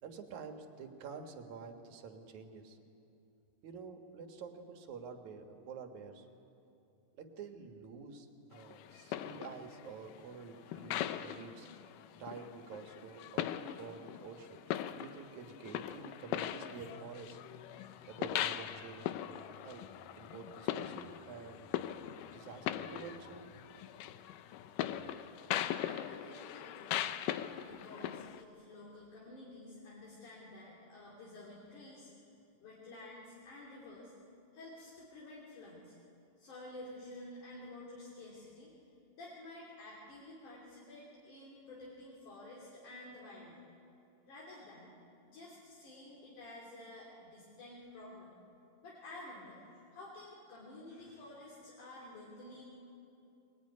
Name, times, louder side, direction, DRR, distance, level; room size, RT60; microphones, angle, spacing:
voice 1, 0.0-2.8 3.6-6.3 7.2-11.7 12.1-13.5 13.8-17.4 18.1-19.9 20.2-21.8 22.3-23.4, right 5 dB, 65° right, 5 dB, 2.8 m, -49 dB
sound 1, 8.5-28.4, left 11 dB, 85° left, 2.4 m, -40 dB
voice 2, 25.7-32.3 32.6-34.1 34.5-36.0 36.4-38.7 39.1-43.6 44.3-44.9 45.3-48.4 48.8-49.6 49.9-52.6, left 2 dB, 70° left, -4 dB, 4.5 m, -51 dB
23.0 x 21.5 x 9.6 m, 2.8 s
omnidirectional pair, 3.7 m